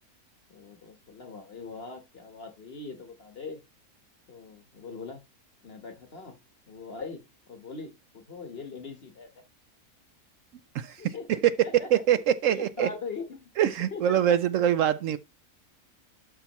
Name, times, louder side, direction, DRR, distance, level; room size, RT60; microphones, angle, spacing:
voice 1, 0.5-3.6 4.3-5.2 5.6-6.4 6.7-9.4 11.0-11.3 11.6-12.0 12.5-13.5 13.9-14.2, left 4 dB, 45° left, 1.5 m, -41 dB
voice 2, 11.7-12.9 13.6-15.2, right 10 dB, 70° right, 0.9 m, -24 dB
11.5 x 5.7 x 3.0 m
omnidirectional pair, 1.5 m